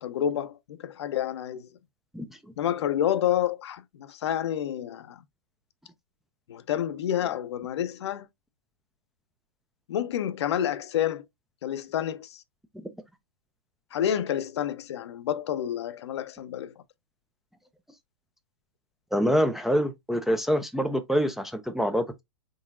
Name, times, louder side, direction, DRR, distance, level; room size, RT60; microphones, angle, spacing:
voice 1, 0.0-1.7 2.6-5.2 6.5-8.3 9.9-11.3 11.6-12.4 13.9-16.8, left 10 dB, 65° left, 0.5 m, -29 dB
voice 2, 19.1-22.2, equal, ahead, 0.4 m, -25 dB
3.8 x 3.8 x 2.4 m
hypercardioid pair, 115°, 15 cm